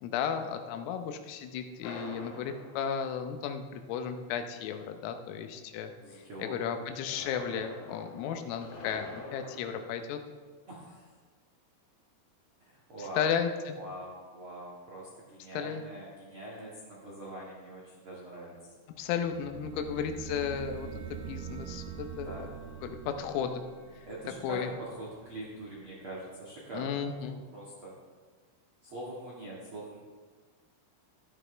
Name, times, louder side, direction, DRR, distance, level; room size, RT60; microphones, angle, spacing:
voice 1, 0.0-10.2 13.0-13.8 15.5-15.8 19.0-22.5 22.8-23.6 24.4-24.7 26.7-27.4, left 7 dB, 85° left, 6 dB, 3.5 m, -34 dB
sound 1, 1.8-3.9 6.8-9.7, left 2 dB, 70° left, 4.2 m, -46 dB
voice 2, 6.0-6.5 10.7-11.1 12.6-13.3 13.7-18.7 22.2-22.5 24.0-27.9 28.8-30.0, right 1 dB, 90° right, -6 dB, 1.1 m, -43 dB
sound 2, 19.0-25.7, right 8 dB, 70° right, 2.4 m, -44 dB
14.0 x 11.0 x 3.4 m, 1.5 s
omnidirectional pair, 5.8 m